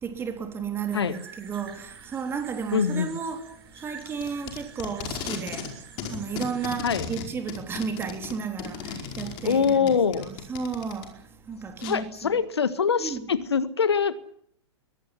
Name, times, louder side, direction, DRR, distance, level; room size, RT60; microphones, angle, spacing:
voice 1, 0.0-5.7 6.1-11.2 11.5-12.4 13.0-13.3, right 6 dB, 15° right, 3.5 m, -33 dB
sound 1, 0.9-6.7, right 7 dB, 55° right, 6.1 m, -48 dB
voice 2, 2.7-3.1 6.8-7.1 9.4-10.3 11.8-14.2, left 6 dB, 65° left, 1.6 m, -24 dB
Packing tape duct tape, 4.0-5.7 6.0-11.1 11.8-11.9, left 7 dB, 30° left, 4.8 m, -36 dB
22.5 x 18.0 x 9.9 m
figure-of-eight pair, 110°, 15 cm